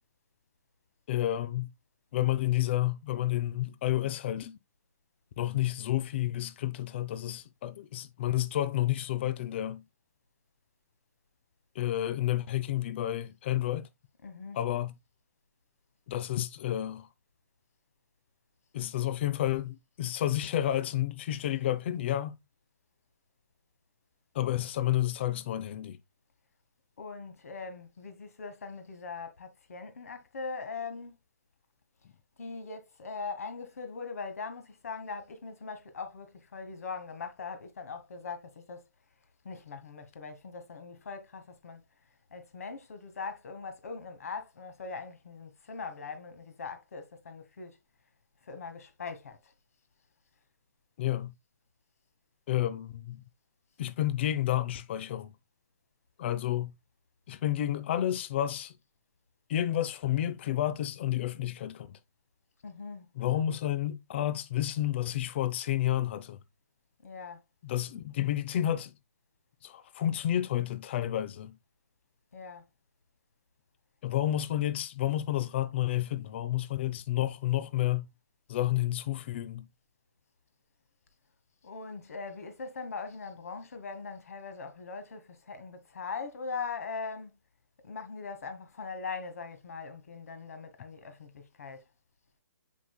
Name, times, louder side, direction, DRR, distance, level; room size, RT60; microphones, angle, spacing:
voice 1, 1.1-1.7 2.1-4.6 5.4-9.8 11.7-13.9 14.5-14.9 16.1-17.1 18.7-22.4 24.3-26.0 51.0-51.3 52.5-53.2 53.8-55.3 56.2-56.7 57.3-58.7 59.5-62.0 63.1-66.4 67.6-68.9 69.6-71.6 74.0-78.1 78.5-79.7, left 13 dB, 40° left, 0.7 m, -30 dB
voice 2, 14.2-14.7 27.0-31.1 32.4-38.9 39.4-41.8 42.3-47.8 48.4-49.5 62.6-63.1 67.0-67.4 72.3-72.6 81.6-87.4 87.8-91.8, left 4 dB, 60° left, 1.7 m, -41 dB
7.2 x 5.8 x 2.2 m
figure-of-eight pair, 130°, 9 cm